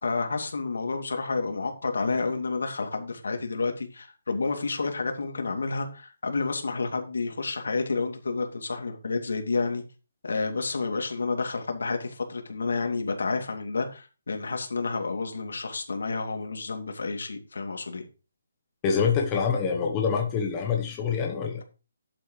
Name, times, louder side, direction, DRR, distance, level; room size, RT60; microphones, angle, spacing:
voice 1, 0.0-9.8 10.2-18.0, left 4 dB, 75° left, 4 dB, 2.7 m, -30 dB
voice 2, 18.8-21.6, left 6 dB, 15° left, 1 dB, 1.1 m, -26 dB
11.5 x 8.1 x 3.2 m, 0.33 s
hypercardioid pair, 175°, 0 cm